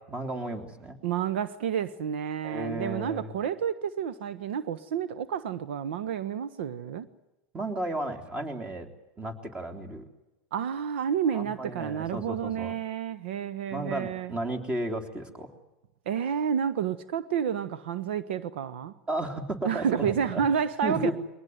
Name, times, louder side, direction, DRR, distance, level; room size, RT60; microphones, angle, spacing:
voice 1, 0.1-1.0 2.4-3.3 7.5-8.9 9.2-10.1 11.3-12.7 13.7-15.5 19.1-20.4 20.8-21.1, right 1 dB, 20° right, 3.4 m, -33 dB
voice 2, 1.0-7.1 10.5-14.3 16.1-18.9 19.6-21.1, right 8 dB, 75° right, 1.2 m, -30 dB
22.5 x 19.0 x 9.4 m
supercardioid pair, 120°, 6 cm